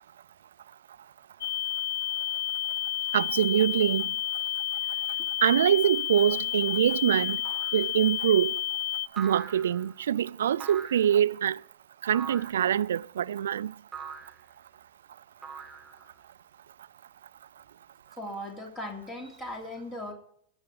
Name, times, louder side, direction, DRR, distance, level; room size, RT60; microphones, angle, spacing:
sound 1, 1.4-9.1, left 12 dB, 90° left, 0.7 m, -31 dB
voice 1, 3.1-4.1 5.4-7.4 7.7-8.6 9.2-11.6 12.0-13.7, right 9 dB, 85° right, 0.4 m, -24 dB
sound 2, 7.5-7.9 9.2-9.9 10.6-11.2 12.1-12.7 13.9-14.4 15.4-16.2, right 6 dB, 15° right, 1.8 m, -42 dB
voice 2, 18.1-20.1, left 1 dB, 20° left, 3.3 m, -38 dB
19.0 x 7.1 x 4.8 m
hypercardioid pair, 120°, 0 cm